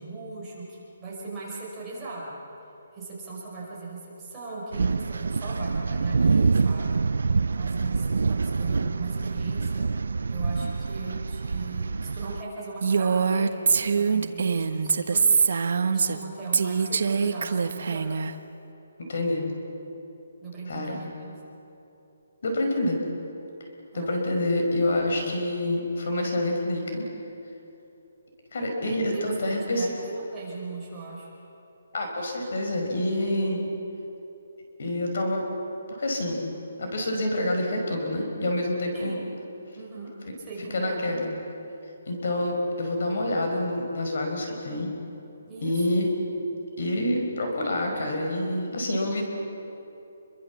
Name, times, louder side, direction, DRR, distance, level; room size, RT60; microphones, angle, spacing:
voice 1, 0.0-2.4 2.9-7.0 7.5-9.9 10.3-15.3 15.8-18.1 20.4-21.3 23.9-24.2 29.0-31.3 38.9-39.3 39.7-40.1 40.4-41.0 45.5-45.8, right 3 dB, 10° right, -8 dB, 5.5 m, -38 dB
sound 1, 4.7-12.4, right 4 dB, 75° right, 0.5 m, -26 dB
Female speech woman speaking, 12.8-16.2 16.5-18.3, right 5 dB, 55° right, 1.3 m, -23 dB
voice 2, 19.1-19.4 20.7-21.0 22.4-23.0 23.9-27.0 28.5-29.9 31.9-33.6 34.8-35.4 35.9-36.5 36.8-39.2 40.7-41.3 42.1-44.9 45.6-46.1 46.8-49.2, left 1 dB, 55° left, 2 dB, 5.2 m, -27 dB
29.5 x 23.0 x 7.3 m, 2.9 s
hypercardioid pair, 175°, 0 cm